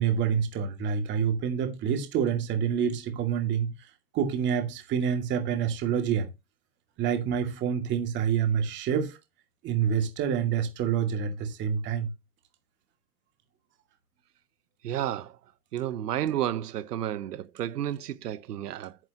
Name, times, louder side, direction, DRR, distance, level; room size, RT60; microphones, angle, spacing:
voice 1, 0.0-6.3 7.0-9.2 9.6-12.1, right 8 dB, 25° right, 2.4 m, -27 dB
voice 2, 14.8-15.3 15.7-19.0, right 11 dB, 85° right, 1.1 m, -31 dB
9.8 x 9.6 x 2.9 m
supercardioid pair, 160°, 46 cm